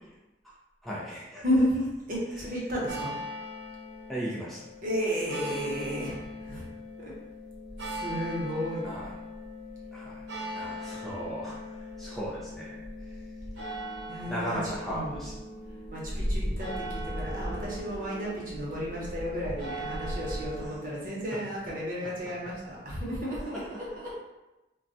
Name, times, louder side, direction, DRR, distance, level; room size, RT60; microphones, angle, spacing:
voice 1, 0.8-1.4 2.3-2.4 4.1-4.6 8.8-9.1 9.9-10.2 10.5-13.3 14.3-15.3 20.6-20.8 23.4-23.6, equal, ahead, -7 dB, 0.4 m, -37 dB
voice 2, 1.4-3.2 4.8-6.7 7.0-7.1 7.8-8.9 14.1-14.6 14.9-15.2 15.9-24.1, equal, 50° right, -5 dB, 0.9 m, -32 dB
sound 1, 2.9-20.8, equal, 90° right, 0.8 m, -38 dB
2.2 x 2.2 x 3.8 m, 1.0 s
head